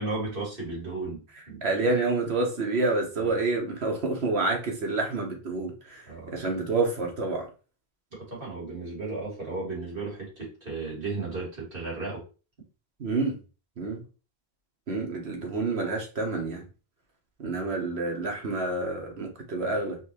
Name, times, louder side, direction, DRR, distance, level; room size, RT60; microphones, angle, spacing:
voice 1, 0.0-1.6 3.2-3.3 6.1-6.3 8.1-12.2, right 3 dB, 60° right, -5 dB, 2.4 m, -34 dB
voice 2, 1.6-7.5 13.0-13.4 13.8-14.0 14.9-16.6 17.4-20.0, right 3 dB, 80° right, 1 dB, 1.4 m, -28 dB
4.3 x 3.2 x 2.9 m, 0.34 s
omnidirectional pair, 1.1 m